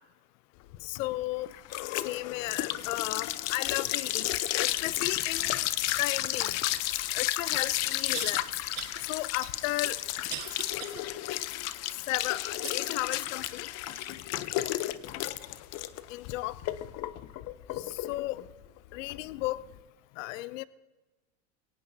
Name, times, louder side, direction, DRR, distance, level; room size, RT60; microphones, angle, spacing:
sound 1, 0.7-19.8, left 15 dB, 45° left, 0.6 m, -32 dB
voice 1, 0.8-1.5 2.0-4.3 4.6-5.6 6.0-6.5 7.1-8.4 9.0-10.0 12.1-13.7 16.1-16.6 17.8-18.4 18.9-19.6 20.2-20.7, left 18 dB, 80° left, 18 dB, 0.5 m, -34 dB
sound 2, 8.1-8.4 8.8-9.0 9.4-11.0 11.5-11.6 12.6-13.4 13.9-14.1 14.8-14.9, right 11 dB, 55° right, 1.6 m, -41 dB
22.5 x 17.5 x 2.7 m, 1.2 s
supercardioid pair, 140°, 38 cm